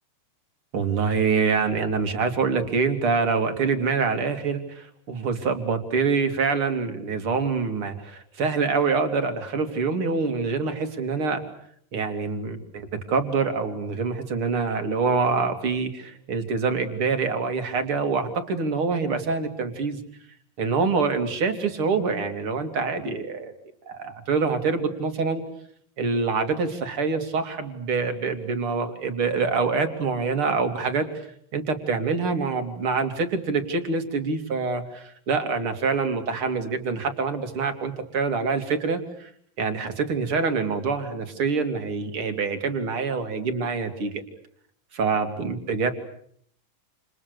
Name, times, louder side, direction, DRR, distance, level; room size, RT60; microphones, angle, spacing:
voice 1, 0.7-11.4 11.9-20.0 20.6-23.5 23.9-25.4 26.0-31.1 31.5-39.3 39.6-44.2 45.0-45.9, right 4 dB, 40° right, 7 dB, 3.3 m, -25 dB
29.5 x 29.0 x 6.9 m, 0.66 s
omnidirectional pair, 4.1 m